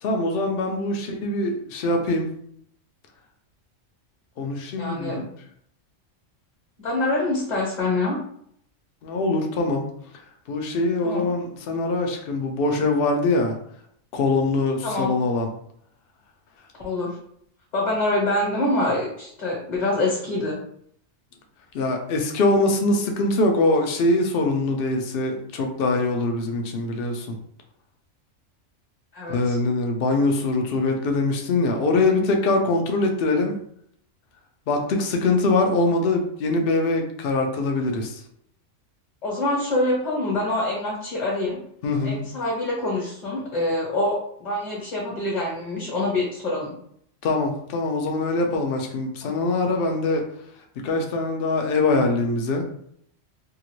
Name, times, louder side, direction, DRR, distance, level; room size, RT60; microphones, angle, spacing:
voice 1, 0.0-2.3 4.4-5.2 9.0-9.9 10.5-13.6 14.1-15.5 21.7-27.4 29.3-33.6 34.7-38.2 41.8-42.2 47.2-50.3 50.8-52.6, left 2 dB, 60° left, 3 dB, 0.7 m, -23 dB
voice 2, 4.8-5.3 6.8-8.2 11.0-11.3 14.8-15.1 16.8-17.2 17.7-20.6 29.1-29.6 39.2-41.6 42.0-46.7 49.2-49.3, left 2 dB, 40° left, -5 dB, 1.0 m, -25 dB
2.8 x 2.5 x 3.0 m, 0.68 s
omnidirectional pair, 1.3 m